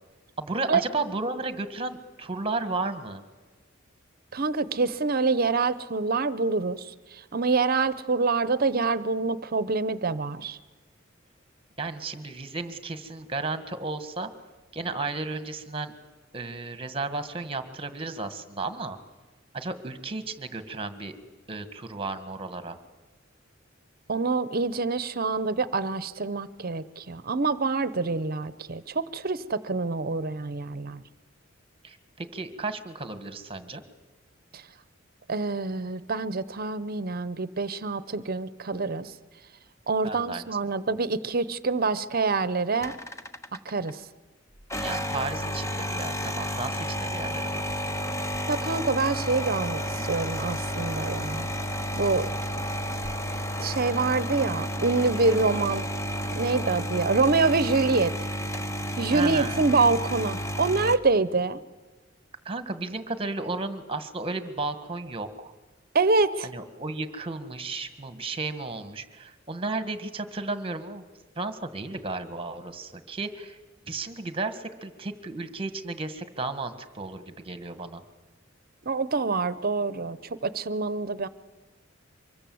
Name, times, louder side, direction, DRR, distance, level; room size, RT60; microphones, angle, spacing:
voice 1, 0.4-3.2 11.8-14.3 14.7-15.9 16.3-19.0 19.5-21.2 21.5-22.8 31.8-33.8 40.0-40.4 44.8-47.6 59.1-59.7 62.4-65.5 66.4-71.0 71.4-73.6 73.9-78.0, right 3 dB, 30° right, 10 dB, 1.7 m, -33 dB
voice 2, 4.3-10.6 24.1-31.0 35.3-39.1 39.9-42.9 43.7-44.0 44.9-45.0 48.5-51.5 51.9-52.3 53.6-55.9 56.3-58.1 59.0-61.6 65.9-66.5 78.9-80.2 80.4-81.3, right 3 dB, 50° right, 15 dB, 0.8 m, -26 dB
sound 1, 42.8-43.9 44.6-61.0, equal, 15° left, 1.0 m, -31 dB
25.0 x 22.0 x 7.9 m, 1.3 s
head